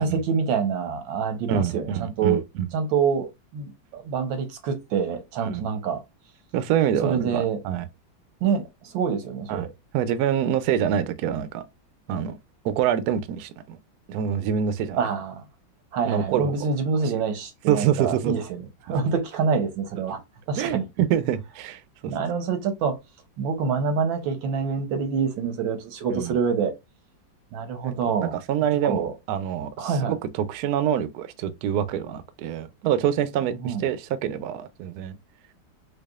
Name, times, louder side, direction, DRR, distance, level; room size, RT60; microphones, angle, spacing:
voice 1, 0.0-2.4 2.7-6.0 7.0-7.6 8.4-9.7 15.0-15.4 15.9-20.2 20.5-20.8 22.1-23.0 23.4-26.7 27.5-28.4 28.8-29.1 29.8-30.2 33.6-33.9, right 6 dB, 90° right, 1.5 m, -26 dB
voice 2, 1.5-2.7 5.4-5.6 6.5-7.9 9.5-9.7 9.9-11.6 12.1-12.4 12.6-13.8 14.1-15.1 16.1-16.7 17.7-18.3 20.6-22.1 26.1-26.3 27.8-27.9 28.2-35.2, right 9 dB, 75° right, 0.9 m, -26 dB
4.7 x 2.4 x 2.3 m
omnidirectional pair, 2.0 m